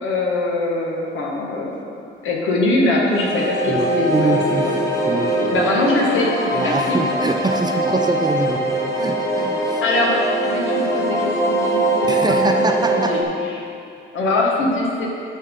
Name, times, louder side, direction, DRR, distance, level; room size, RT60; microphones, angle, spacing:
voice 1, 0.0-1.7 2.2-4.3 4.6-4.7 5.5-7.0 9.8-13.6 14.1-15.1, left 2 dB, 80° left, -2 dB, 1.4 m, -22 dB
sound 1, 3.1-13.2, right 1 dB, 15° left, 1.0 m, -22 dB
voice 2, 3.7-4.7 5.1-5.6 6.5-9.8 12.1-13.1, right 3 dB, 20° right, 4 dB, 0.6 m, -24 dB
9.6 x 5.5 x 3.7 m, 2.6 s
cardioid pair, 90°, 20 cm